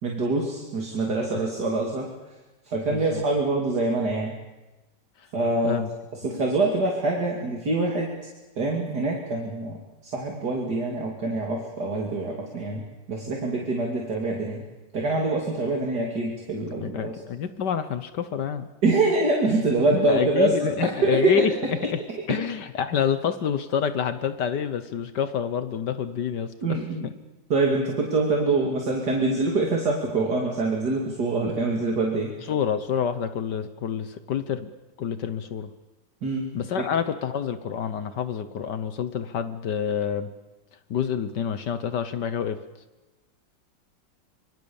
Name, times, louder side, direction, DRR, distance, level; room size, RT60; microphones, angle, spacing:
voice 1, 0.0-2.1 2.7-4.3 5.3-5.8 6.1-8.1 8.6-9.8 10.1-12.8 13.1-14.6 14.9-17.1 18.8-21.7 26.6-27.1 27.5-32.3 36.2-36.5, right 2 dB, 60° right, 0 dB, 3.2 m, -25 dB
voice 2, 2.9-3.2 5.6-5.9 16.8-18.7 19.9-21.5 21.8-22.0 22.3-26.8 32.5-34.7 35.0-35.7 36.5-40.3 40.9-42.6, left 8 dB, 65° left, 11 dB, 1.6 m, -28 dB
25.5 x 23.5 x 7.1 m, 1.1 s
omnidirectional pair, 2.0 m